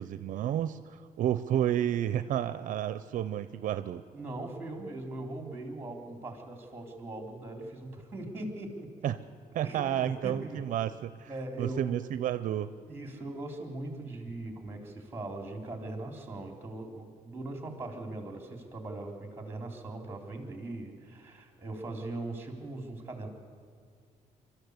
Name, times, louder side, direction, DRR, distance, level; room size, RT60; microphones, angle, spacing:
voice 1, 0.0-4.0 9.0-9.2 9.5-11.3 11.6-12.7, right 11 dB, 70° right, 13 dB, 0.6 m, -31 dB
voice 2, 4.1-9.1 9.6-10.6 11.3-12.0 12.9-23.3, right 2 dB, 15° right, 3 dB, 3.6 m, -40 dB
24.5 x 13.0 x 8.1 m, 2.1 s
cardioid pair, 105°, 14 cm